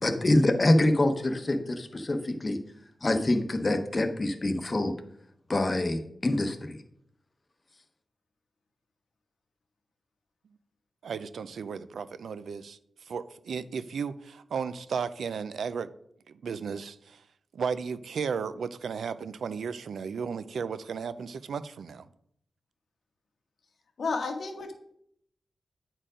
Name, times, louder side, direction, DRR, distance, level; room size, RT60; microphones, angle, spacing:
voice 1, 0.0-2.6 3.0-4.9 5.5-6.8, left 1 dB, 30° left, 7 dB, 0.8 m, -25 dB
voice 2, 11.0-12.8 13.1-15.9 16.3-17.2 17.5-22.1, right 6 dB, 90° right, 14 dB, 0.4 m, -34 dB
voice 3, 24.0-24.7, left 4 dB, 70° left, 5 dB, 1.2 m, -31 dB
8.9 x 4.5 x 5.0 m, 0.71 s
wide cardioid pair, 115°, 0 cm